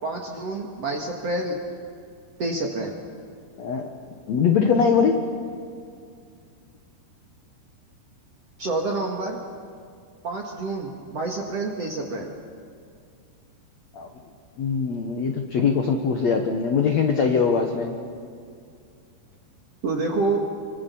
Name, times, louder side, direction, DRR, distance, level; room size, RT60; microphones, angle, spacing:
voice 1, 0.0-1.6 2.4-3.0 8.6-9.4 10.2-12.3 19.8-20.4, right 2 dB, 55° right, 1 dB, 1.9 m, -28 dB
voice 2, 3.6-3.9 4.3-5.1 13.9-14.1 14.6-17.9, left 6 dB, 70° left, 4 dB, 1.6 m, -22 dB
26.0 x 24.5 x 7.0 m, 2.3 s
omnidirectional pair, 5.1 m